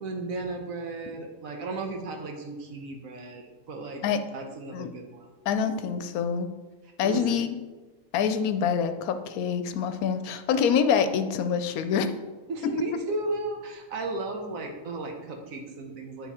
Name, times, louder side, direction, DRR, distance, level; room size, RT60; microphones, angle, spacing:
voice 1, 0.0-4.0 4.3-5.3 7.0-7.4 12.5-16.3, right 2 dB, 65° right, 3 dB, 1.4 m, -35 dB
voice 2, 5.5-6.5 7.0-7.6 8.1-12.1 12.6-12.7, left 7 dB, 80° left, 9 dB, 1.0 m, -26 dB
9.7 x 3.6 x 4.2 m, 1.3 s
omnidirectional pair, 1.5 m